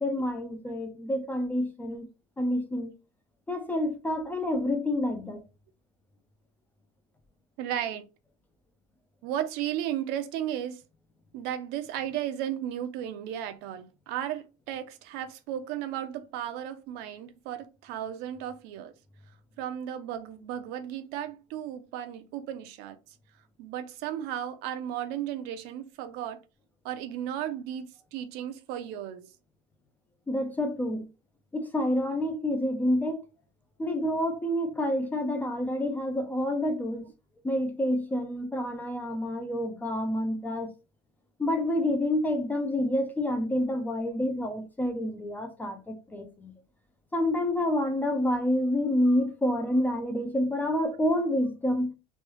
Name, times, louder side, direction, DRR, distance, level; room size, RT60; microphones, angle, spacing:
voice 1, 0.0-2.1 2.4-2.9 3.5-5.4 30.3-31.1 31.5-33.2 33.8-37.0 37.4-40.7 41.4-46.5 47.1-51.9, left 1 dB, 10° left, 0.3 m, -28 dB
voice 2, 7.6-8.1 9.2-10.8 11.3-18.9 19.6-23.2 23.6-26.4 26.8-29.3 44.4-44.5, right 10 dB, 60° right, 0.5 m, -35 dB
3.1 x 2.3 x 2.9 m
cardioid pair, 155°, 18 cm